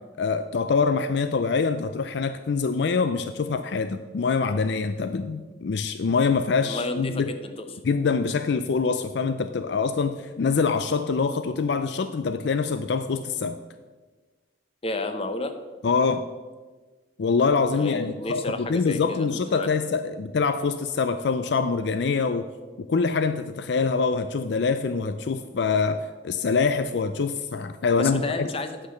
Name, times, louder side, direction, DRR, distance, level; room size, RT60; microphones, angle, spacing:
voice 1, 0.2-7.3 7.8-13.6 15.8-16.3 17.2-22.5 22.8-28.5, left 5 dB, 60° left, 10 dB, 0.4 m, -25 dB
voice 2, 6.6-7.7 14.8-15.5 17.7-19.7 27.9-28.9, left 2 dB, 30° left, 8 dB, 0.7 m, -31 dB
8.9 x 5.8 x 6.5 m, 1.3 s
head